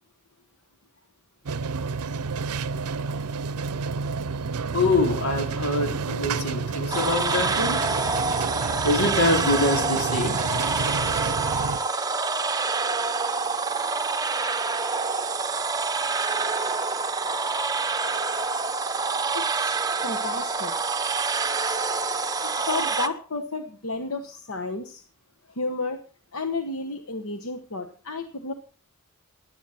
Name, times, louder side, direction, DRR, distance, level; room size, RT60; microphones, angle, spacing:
sound 1, 1.5-11.8, right 4 dB, 90° right, 0.6 m, -30 dB
voice 1, 4.7-7.8 8.8-10.4, left 2 dB, 90° left, 3 dB, 3.6 m, -24 dB
sound 2, 6.9-23.1, right 4 dB, 15° right, 0.7 m, -26 dB
voice 2, 19.3-20.7 22.5-25.0 25.5-26.0 26.3-28.5, left 3 dB, 65° left, 6 dB, 1.1 m, -32 dB
15.0 x 11.0 x 4.3 m, 0.38 s
head